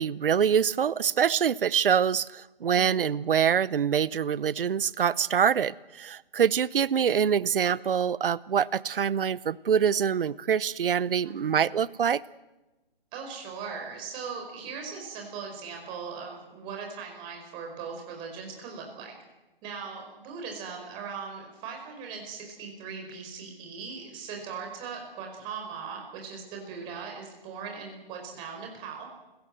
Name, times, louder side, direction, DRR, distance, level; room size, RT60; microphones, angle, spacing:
voice 1, 0.0-12.2, right 8 dB, 65° right, 20 dB, 0.8 m, -25 dB
voice 2, 2.7-3.1 11.2-11.6 13.1-19.1 19.6-29.1, right 5 dB, 15° right, 1 dB, 4.8 m, -39 dB
29.0 x 17.5 x 7.8 m, 1.1 s
hypercardioid pair, 160°, 29 cm